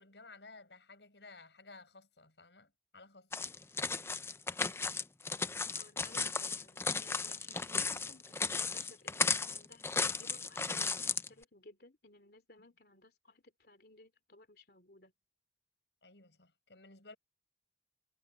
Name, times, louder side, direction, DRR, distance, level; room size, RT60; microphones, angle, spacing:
voice 1, 0.0-3.3 16.0-17.2, left 3 dB, 80° left, 7.1 m, -56 dB
sound 1, 3.3-11.3, left 4 dB, 15° left, 0.5 m, -35 dB
voice 2, 5.7-15.1, left 2 dB, 60° left, 3.3 m, -59 dB
head